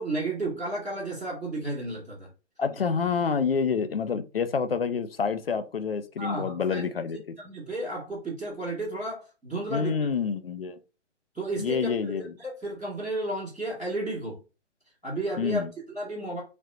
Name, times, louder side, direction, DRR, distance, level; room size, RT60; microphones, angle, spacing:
voice 1, 0.0-2.3 6.2-6.8 7.4-9.9 11.3-11.9 12.2-14.4 15.0-16.4, right 2 dB, ahead, -21 dB, 0.6 m, -32 dB
voice 2, 2.6-7.3 9.7-10.8 11.6-12.3 15.4-15.7, left 6 dB, 50° left, 10 dB, 0.4 m, -28 dB
3.2 x 2.5 x 2.8 m, 0.32 s
hypercardioid pair, 165°, 37 cm